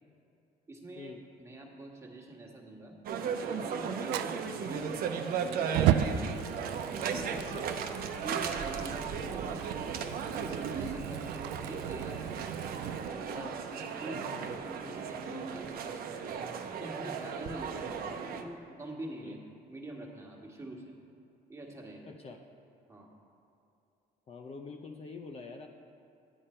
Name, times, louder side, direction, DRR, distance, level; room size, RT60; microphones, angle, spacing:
voice 1, 0.7-1.1 1.4-3.0 3.4-5.9 6.1-6.3 7.0-7.7 8.2-10.1 10.6-12.3 13.0-16.4 16.8-17.9 18.4-19.4 19.7-20.9 21.5-22.1 22.9-23.1, right 1 dB, 15° right, -1 dB, 1.6 m, -45 dB
sound 1, 3.1-18.4, right 6 dB, 60° right, 0.8 m, -36 dB
Fire, 4.1-13.1, right 10 dB, 85° right, 0.4 m, -35 dB
voice 2, 7.3-7.7 13.3-13.6 18.0-18.2 19.2-19.4 22.1-22.4 24.3-25.7, left 4 dB, 35° left, 4 dB, 0.6 m, -45 dB
9.9 x 8.6 x 4.4 m, 2.8 s
cardioid pair, 110°, 17 cm